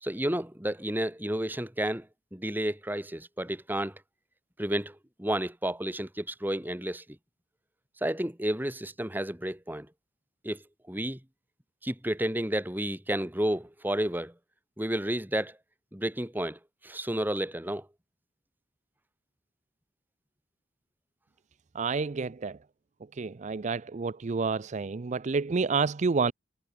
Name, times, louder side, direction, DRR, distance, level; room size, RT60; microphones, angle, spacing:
voice 1, 0.0-4.0 4.6-7.2 8.0-9.9 10.4-11.2 11.8-14.3 14.8-15.6 15.9-17.9, right 1 dB, 10° right, 1.9 m, -31 dB
voice 2, 21.7-22.6 23.1-26.3, right 4 dB, 40° right, 0.4 m, -29 dB
head